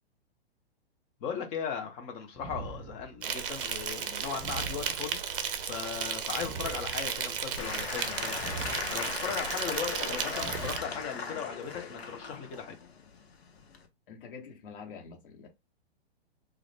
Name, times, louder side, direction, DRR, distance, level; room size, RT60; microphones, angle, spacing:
voice 1, 1.2-5.2 5.6-8.5 8.9-12.8, left 7 dB, 20° left, 0.4 m, -37 dB
sound 1, 2.3-3.4 4.3-5.4 6.3-7.4 8.3-9.4 10.3-11.4, right 3 dB, 5° right, 0.8 m, -43 dB
Insect, 3.2-10.8, right 7 dB, 55° right, 0.6 m, -35 dB
Applause / Crowd, 7.6-13.9, left 5 dB, 75° left, 0.7 m, -38 dB
voice 2, 14.1-15.5, left 5 dB, 55° left, 1.1 m, -46 dB
2.4 x 2.0 x 3.1 m
hypercardioid pair, 120°, 32 cm